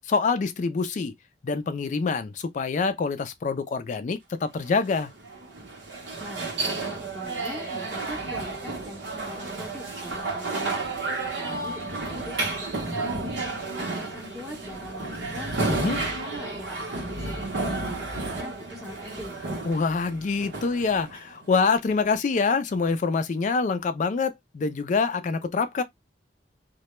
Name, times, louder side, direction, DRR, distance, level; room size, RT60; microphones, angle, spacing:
voice 1, 0.1-1.1 1.4-5.1 15.7-16.0 19.6-25.8, left 4 dB, 45° left, 0.3 m, -25 dB
sound 1, 4.6-21.6, right 3 dB, 75° right, 0.8 m, -32 dB
voice 2, 6.2-10.9 11.2-13.1 13.8-19.5, left 1 dB, ahead, 0.7 m, -42 dB
2.2 x 2.0 x 2.9 m
head